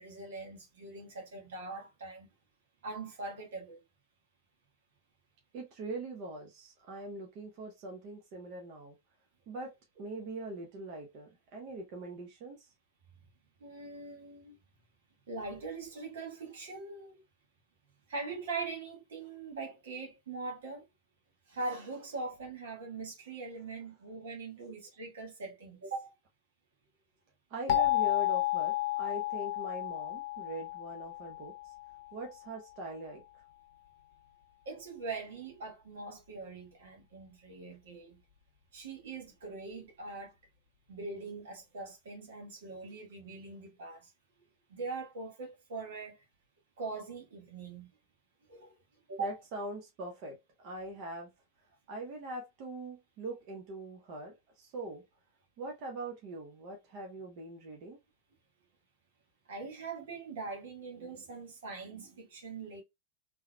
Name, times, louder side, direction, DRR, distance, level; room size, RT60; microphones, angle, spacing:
voice 1, 0.0-2.3 2.8-3.8 13.6-14.6 15.3-17.2 18.1-20.9 21.5-26.1 27.8-27.9 34.6-38.2 38.7-40.3 40.9-44.1 44.7-46.2 46.8-47.9 48.5-48.7 49.1-49.4 59.5-62.8, right 3 dB, 60° right, 1.4 m, -42 dB
voice 2, 5.5-8.9 9.5-12.7 27.5-31.7 32.1-33.2 49.2-51.3 51.9-55.0 55.6-58.0, right 1 dB, 45° right, 1.1 m, -42 dB
sound 1, 27.7-32.4, left 16 dB, 45° left, 0.8 m, -32 dB
3.9 x 3.0 x 2.2 m
figure-of-eight pair, 90°, 0 cm